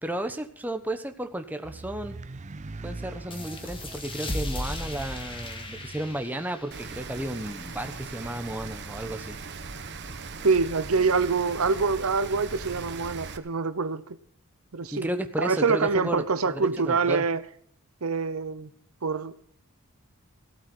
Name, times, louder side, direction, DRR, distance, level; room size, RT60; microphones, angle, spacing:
voice 1, 0.0-2.2 2.8-9.4 14.9-16.2 16.5-17.2, right 1 dB, 10° right, 1.1 m, -33 dB
sound 1, 1.6-6.2, right 3 dB, 35° right, 0.5 m, -42 dB
sound 2, 3.3-8.5, left 1 dB, 25° left, 1.9 m, -37 dB
Rain, 6.7-13.4, right 4 dB, 50° right, 1.3 m, -39 dB
voice 2, 10.4-14.0 14.7-15.1 15.4-17.4 18.0-18.7 19.0-19.3, right 4 dB, 70° right, 0.9 m, -25 dB
16.0 x 8.6 x 6.1 m
head